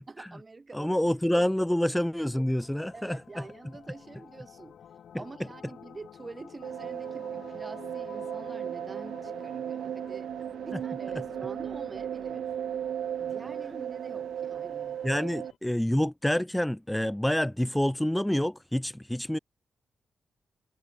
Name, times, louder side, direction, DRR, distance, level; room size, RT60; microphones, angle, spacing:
voice 1, 0.1-1.0 1.3-1.5 2.9-4.8 5.2-10.3 10.6-12.5 13.2-15.0, right 3 dB, 30° right, 7.2 m, -46 dB
voice 2, 0.7-3.5 5.1-5.2 10.7-10.8 15.0-19.4, left 1 dB, 5° left, 0.6 m, -27 dB
sound 1, 2.4-15.6, left 9 dB, 75° left, 2.6 m, -51 dB
sound 2, 6.6-15.5, right 9 dB, 80° right, 1.1 m, -36 dB
cardioid pair, 95°, 0 cm